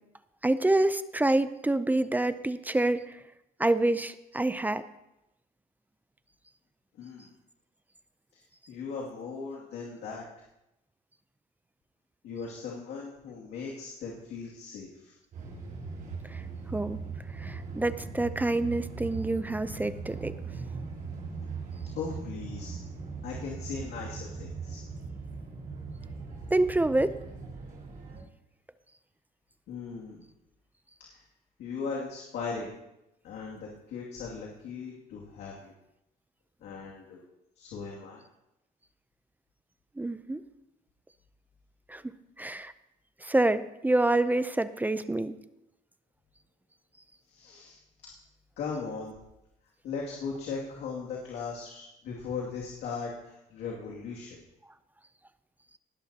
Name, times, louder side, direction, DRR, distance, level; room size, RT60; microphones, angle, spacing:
voice 1, 0.4-3.1 3.6-4.9 16.3-16.4 16.7-17.0 17.3-20.3 26.5-27.2 40.0-40.4 41.9-42.0 42.4-42.7 43.2-45.4, right 2 dB, 10° right, 13 dB, 0.5 m, -27 dB
voice 2, 6.9-7.3 8.7-10.2 12.2-15.2 22.0-22.8 23.2-24.8 29.7-30.2 31.0-31.2 31.6-32.7 33.2-35.7 36.6-37.2 37.6-38.2 47.3-47.8 48.6-49.2 49.8-54.4, left 5 dB, 75° left, -3 dB, 2.4 m, -38 dB
sound 1, 15.3-28.2, right 4 dB, 55° right, 4.1 m, -40 dB
19.0 x 11.5 x 2.9 m, 0.89 s
cardioid pair, 110°, 17 cm